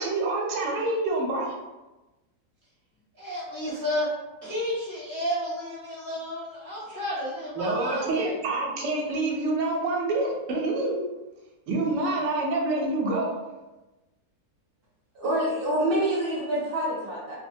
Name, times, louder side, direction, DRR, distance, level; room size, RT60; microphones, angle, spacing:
voice 1, 0.0-1.6 7.5-11.0 11.7-13.4, right 2 dB, 85° right, -1 dB, 1.2 m, -27 dB
voice 2, 3.2-4.1 4.4-8.4, left 1 dB, 10° left, -9 dB, 0.7 m, -31 dB
voice 3, 15.1-17.4, right 1 dB, 45° right, -5 dB, 0.7 m, -26 dB
3.1 x 2.1 x 2.6 m, 1.1 s
omnidirectional pair, 1.8 m